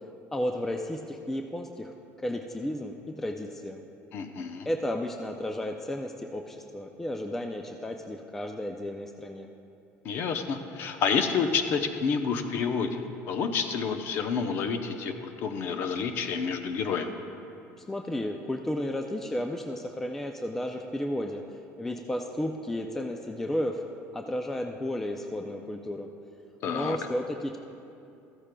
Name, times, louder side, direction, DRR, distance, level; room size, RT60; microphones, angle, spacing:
voice 1, 0.3-1.9 2.2-3.8 4.7-9.5 17.9-21.4 21.8-23.8 24.1-26.1 26.7-27.6, left 1 dB, 5° left, 3 dB, 0.3 m, -33 dB
voice 2, 4.1-4.7 10.0-17.1 26.6-27.0, left 5 dB, 40° left, 7 dB, 0.7 m, -29 dB
14.5 x 13.5 x 2.2 m, 2.7 s
cardioid pair, 175°, 6 cm